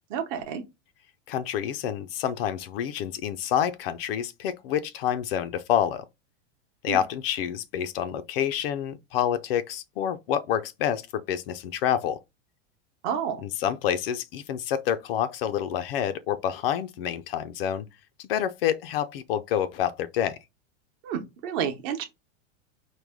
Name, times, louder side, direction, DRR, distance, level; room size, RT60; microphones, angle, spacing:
voice 1, 0.1-0.6 6.9-7.0 13.0-13.4 21.0-22.1, right 8 dB, 40° right, 0.9 m, -30 dB
voice 2, 1.3-6.0 6.8-12.2 13.4-17.8 18.2-20.4, left 10 dB, 50° left, 0.4 m, -28 dB
4.7 x 2.1 x 3.5 m
supercardioid pair, 155°, 37 cm